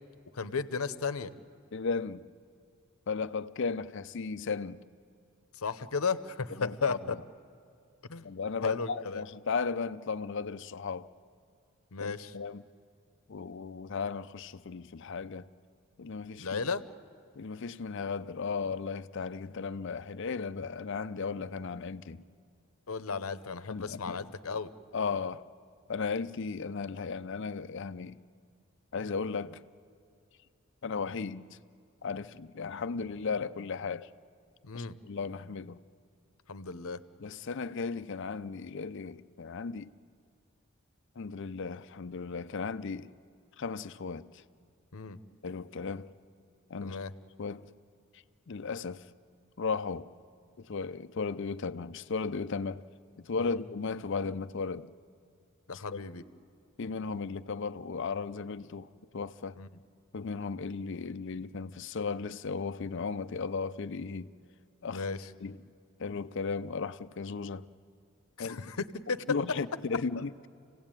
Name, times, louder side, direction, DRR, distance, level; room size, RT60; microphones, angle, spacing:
voice 1, 0.3-1.3 5.6-7.2 8.1-8.3 8.6-9.2 11.9-12.3 16.4-16.8 22.9-24.7 34.6-35.0 36.5-37.0 44.9-45.2 46.8-47.1 53.4-53.6 55.7-56.2 59.6-59.7 64.9-65.2 68.4-69.4, left 5 dB, 85° left, 0.8 m, -34 dB
voice 2, 1.7-2.3 3.1-4.8 6.6-7.2 8.2-11.1 12.0-12.6 13.3-15.5 16.0-16.6 17.4-22.2 23.7-24.3 24.9-25.4 25.9-28.2 28.9-29.6 30.8-31.6 32.0-34.1 34.7-35.8 37.2-39.9 41.2-43.1 43.6-44.4 45.4-46.1 46.7-47.0 47.4-47.7 48.5-49.1 49.6-50.1 50.6-52.8 53.2-54.9 55.7-56.0 56.8-59.6 60.1-64.3 64.8-65.1 65.4-65.6 66.0-67.7 68.4-68.6 69.3-70.5, left 4 dB, 60° left, 0.5 m, -35 dB
27.0 x 17.0 x 9.0 m
head